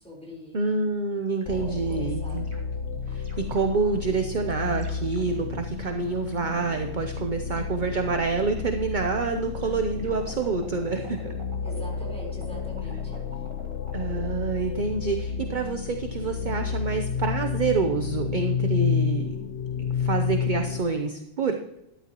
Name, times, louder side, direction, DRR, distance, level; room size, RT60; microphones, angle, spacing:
voice 1, 0.0-0.6 1.6-2.4 11.6-13.5, equal, 5° left, -3 dB, 4.2 m, -43 dB
voice 2, 0.5-2.5 3.1-11.2 13.9-19.4 20.0-21.6, right 4 dB, 45° right, 5 dB, 0.8 m, -27 dB
sound 1, 1.4-1.5 1.9-2.0 2.3-4.2 4.5-7.2 7.5-9.3 9.6-14.2, right 1 dB, 20° right, 1.7 m, -46 dB
sound 2, 1.5-20.8, left 6 dB, 65° left, 0.8 m, -31 dB
13.0 x 11.5 x 3.0 m, 0.88 s
omnidirectional pair, 1.4 m